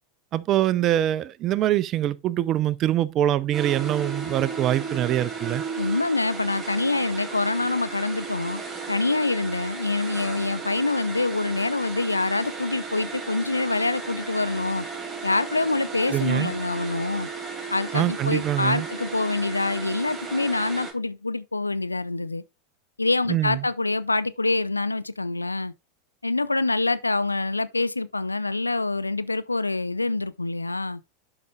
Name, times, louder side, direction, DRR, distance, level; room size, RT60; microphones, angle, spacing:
voice 1, 0.3-5.6 16.1-16.5 17.9-18.9 23.3-23.7, right 12 dB, 35° right, 0.5 m, -24 dB
sound 1, 3.5-20.9, right 5 dB, 10° right, 2.5 m, -35 dB
voice 2, 5.8-8.6 8.9-14.9 15.2-17.3 17.7-22.4 23.0-25.7 26.2-31.0, left 3 dB, 85° left, 0.4 m, -25 dB
11.5 x 5.0 x 2.4 m
figure-of-eight pair, 85°, 0 cm